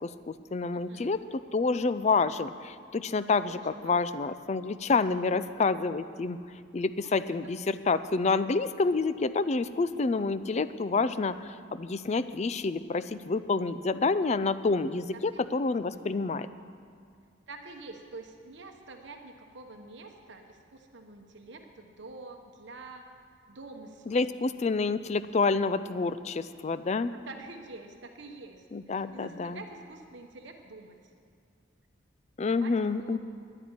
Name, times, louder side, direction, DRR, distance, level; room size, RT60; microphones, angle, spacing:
voice 1, 0.0-6.4 6.7-16.5 24.1-27.1 28.7-29.6 32.4-33.2, left 4 dB, 35° left, 13 dB, 0.4 m, -28 dB
voice 2, 0.7-1.2 3.4-4.3 6.8-7.4 15.1-15.8 17.5-23.1 23.5-24.2 26.8-31.1 32.5-32.7 33.0-33.2, right 3 dB, 60° right, 3 dB, 1.0 m, -47 dB
10.5 x 9.3 x 9.6 m, 2.2 s
head